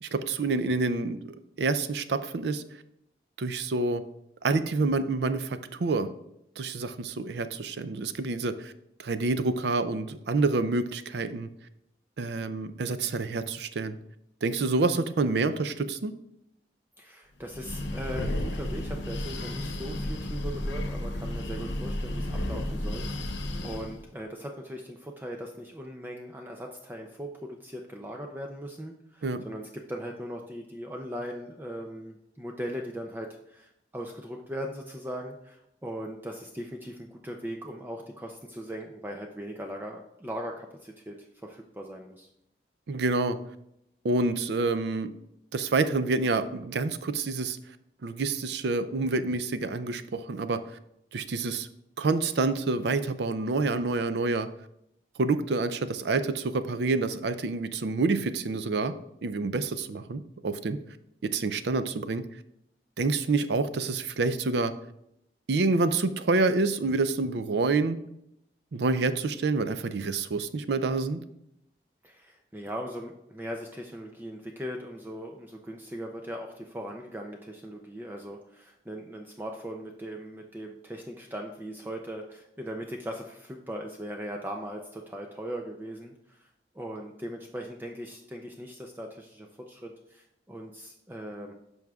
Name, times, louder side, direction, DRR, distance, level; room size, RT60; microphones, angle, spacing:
voice 1, 0.0-2.6 3.4-4.0 4.4-6.1 6.6-8.7 9.0-11.5 12.2-14.0 14.4-16.1 29.2-29.5 42.9-43.4 44.0-45.1 45.5-47.6 48.0-50.6 51.1-51.7 52.0-54.5 55.2-58.9 59.2-60.8 61.2-62.2 63.0-64.7 65.5-68.0 68.7-71.2, right 3 dB, 70° right, 12 dB, 0.4 m, -27 dB
voice 2, 17.0-42.3 72.0-86.5 86.7-91.5, equal, 10° right, 2 dB, 0.4 m, -39 dB
Breathing, 17.4-24.0, left 1 dB, 85° left, 0.9 m, -33 dB
10.5 x 6.2 x 2.4 m, 0.80 s
head